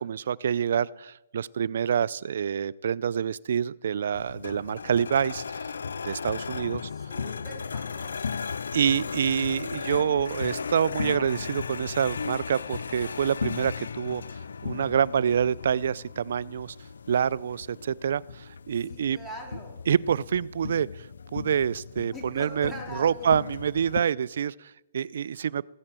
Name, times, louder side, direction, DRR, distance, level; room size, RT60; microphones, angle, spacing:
voice 1, 0.0-5.7 6.0-6.9 8.7-14.2 14.6-16.8 17.1-19.2 19.9-25.7, right 8 dB, 65° right, 23 dB, 0.4 m, -27 dB
sound 1, 4.1-24.0, left 5 dB, 85° left, 0.4 m, -36 dB
voice 2, 6.8-8.7 18.9-19.9 22.1-23.4, equal, 5° left, -2 dB, 3.9 m, -42 dB
18.5 x 7.7 x 7.5 m, 0.95 s
hypercardioid pair, 150°, 0 cm